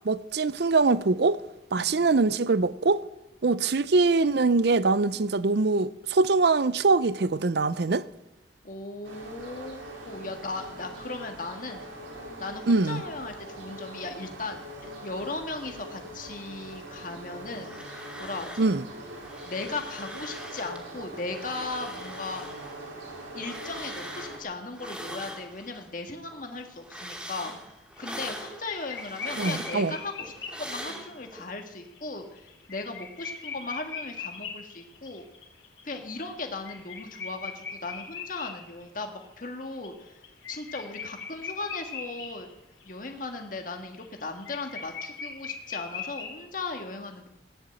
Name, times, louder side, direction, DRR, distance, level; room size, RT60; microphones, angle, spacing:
voice 1, 0.0-1.4 1.7-3.0 3.4-8.1 12.7-13.0 18.6-18.8 29.4-29.9, right 3 dB, 60° right, 0.6 m, -23 dB
voice 2, 8.6-11.9 12.4-17.8 18.2-18.6 19.4-22.4 23.3-27.5 28.0-35.2 35.8-40.1 40.5-42.5 42.8-47.3, left 3 dB, 45° left, 1.6 m, -37 dB
sound 1, 9.0-24.4, right 1 dB, 80° right, 4.2 m, -42 dB
sound 2, 17.4-18.8 19.0-20.8 21.2-25.9 26.3-31.4, equal, 5° right, 2.6 m, -42 dB
sound 3, 28.0-28.4 28.6-30.9 31.6-31.7 31.9-32.0 32.4-39.2 39.6-42.5 42.8-42.9 43.2-46.4, left 5 dB, 65° left, 3.3 m, -40 dB
16.0 x 10.5 x 7.7 m
head